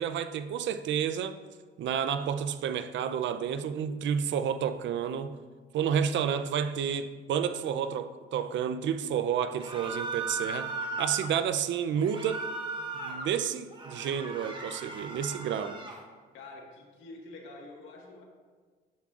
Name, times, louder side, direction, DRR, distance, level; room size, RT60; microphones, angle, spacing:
voice 1, 0.0-1.4 1.8-5.3 5.7-10.7 11.0-12.4 12.9-15.8, right 8 dB, 70° right, 11 dB, 0.5 m, -30 dB
sound 1, 9.6-11.3 12.0-13.3 13.7-16.0, right 3 dB, 25° right, 1.2 m, -37 dB
voice 2, 16.3-18.2, left 2 dB, 85° left, 0 dB, 1.6 m, -47 dB
9.3 x 7.6 x 2.5 m, 1.5 s
cardioid pair, 90°, 20 cm